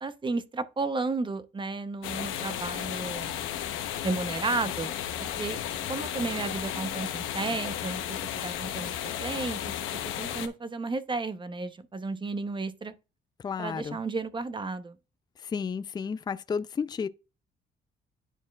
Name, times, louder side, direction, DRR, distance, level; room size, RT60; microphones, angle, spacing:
voice 1, 0.0-3.4 4.0-5.6 5.9-8.9 9.2-9.7 10.2-12.9 13.6-15.0, right 3 dB, 25° right, 0.7 m, -33 dB
sound 1, 2.0-10.5, left 10 dB, 90° left, 0.9 m, -34 dB
voice 2, 13.4-14.0 15.5-17.1, left 6 dB, 20° left, 0.3 m, -32 dB
11.0 x 4.3 x 2.3 m
cardioid pair, 90°, 20 cm